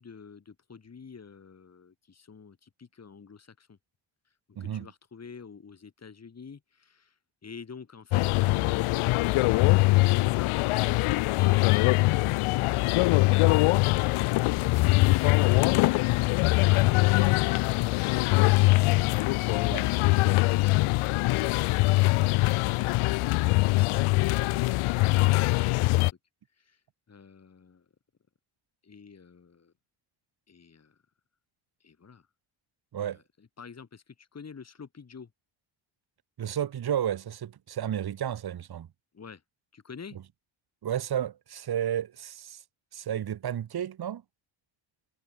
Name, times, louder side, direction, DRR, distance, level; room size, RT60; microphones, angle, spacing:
voice 1, 0.0-3.8 4.3-13.3 19.3-20.9 26.5-26.8 27.1-27.9 28.8-29.7 30.5-31.0 31.8-32.3 33.0-35.3 39.1-39.4 39.7-40.2, left 5 dB, 30° left, 5.9 m, -49 dB
voice 2, 4.6-4.9 19.7-19.8 32.9-33.2 36.4-38.9 40.1-40.2 40.8-42.6 42.9-44.2, right 10 dB, 50° right, 1.8 m, -32 dB
sound 1, 8.1-26.1, left 21 dB, 80° left, 0.6 m, -23 dB
cardioid pair, 135°, 49 cm